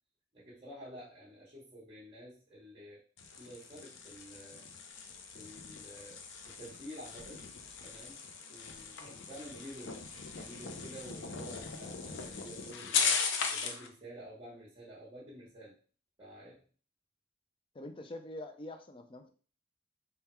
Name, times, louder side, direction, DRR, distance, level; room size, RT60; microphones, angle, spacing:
voice 1, 0.3-3.0 3.4-4.6 5.3-7.5 7.8-8.2 8.5-10.0 10.3-13.2 13.5-15.7 16.2-16.6, equal, 30° right, -8 dB, 1.2 m, -50 dB
sound 1, 3.2-13.9, left 5 dB, 80° left, 0.6 m, -38 dB
voice 2, 17.7-19.3, left 1 dB, 30° left, 6 dB, 0.4 m, -45 dB
3.6 x 2.3 x 4.3 m, 0.39 s
head